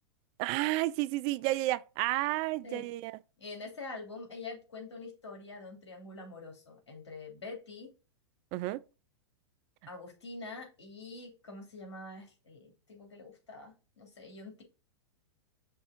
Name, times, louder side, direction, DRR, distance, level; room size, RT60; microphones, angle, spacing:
voice 1, 0.4-3.1 8.5-8.8, right 18 dB, 40° right, 0.3 m, -31 dB
voice 2, 3.4-7.9 9.9-14.6, left 3 dB, 80° left, 3.1 m, -45 dB
5.7 x 3.5 x 5.0 m
hypercardioid pair, 110°, 14 cm